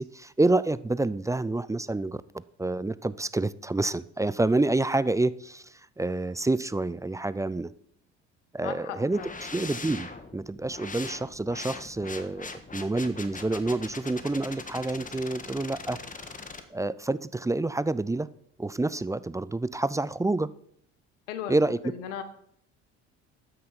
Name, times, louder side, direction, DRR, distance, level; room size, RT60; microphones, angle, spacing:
voice 1, 0.0-7.7 8.5-16.0 16.7-18.3 18.6-20.5 21.5-21.8, right 2 dB, 10° right, 17 dB, 0.5 m, -28 dB
voice 2, 8.6-9.3 21.3-21.6 21.8-22.2, left 9 dB, 80° left, 10 dB, 1.5 m, -36 dB
sound 1, 9.1-16.6, left 4 dB, 20° left, 1.6 m, -41 dB
13.0 x 9.4 x 4.3 m, 0.66 s
hypercardioid pair, 65°, 36 cm